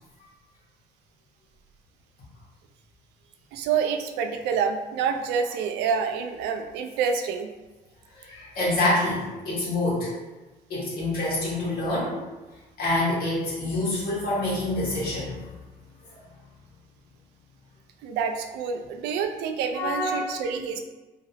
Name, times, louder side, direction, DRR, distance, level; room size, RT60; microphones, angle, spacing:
voice 1, 3.5-7.5 18.0-20.8, right 6 dB, 90° right, 6 dB, 0.4 m, -27 dB
voice 2, 8.1-10.1 10.7-12.2 12.8-15.4 19.7-20.4, left 2 dB, 60° left, -6 dB, 1.5 m, -26 dB
2.9 x 2.8 x 2.9 m, 1.2 s
cardioid pair, 110°, 17 cm